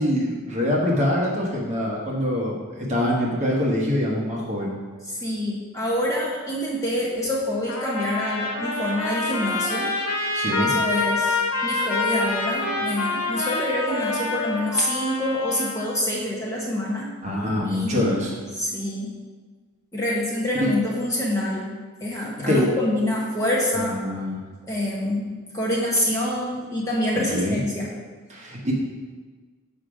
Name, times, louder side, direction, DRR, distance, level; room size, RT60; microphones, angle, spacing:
voice 1, 0.0-4.7 10.3-10.8 17.2-18.3 20.6-20.7 22.5-22.7 23.7-24.4 27.1-27.6 28.3-28.7, left 1 dB, 30° right, -3 dB, 1.3 m, -24 dB
voice 2, 5.1-9.9 10.6-17.1 17.6-18.1 18.5-19.1 19.9-21.7 22.0-24.0 24.7-25.3 25.5-27.9, left 1 dB, 15° left, -5 dB, 1.1 m, -26 dB
Trumpet, 7.7-15.8, left 3 dB, 80° left, 1.3 m, -26 dB
6.7 x 5.1 x 5.1 m, 1.4 s
head